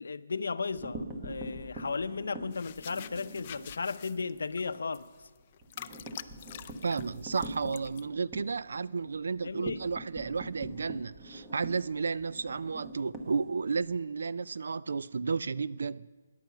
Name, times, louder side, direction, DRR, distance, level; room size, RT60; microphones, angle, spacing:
voice 1, 0.0-5.1 9.4-9.8, left 4 dB, 85° left, 0.6 m, -35 dB
sound 1, 0.6-3.8 4.2-4.4 4.7-4.8 5.1-13.9, right 2 dB, 10° right, 1.1 m, -43 dB
sound 2, 2.5-8.0, left 10 dB, 30° left, 0.4 m, -47 dB
voice 2, 6.8-16.1, right 5 dB, 75° right, 0.3 m, -32 dB
14.5 x 10.5 x 5.7 m
hypercardioid pair, 170°, 0 cm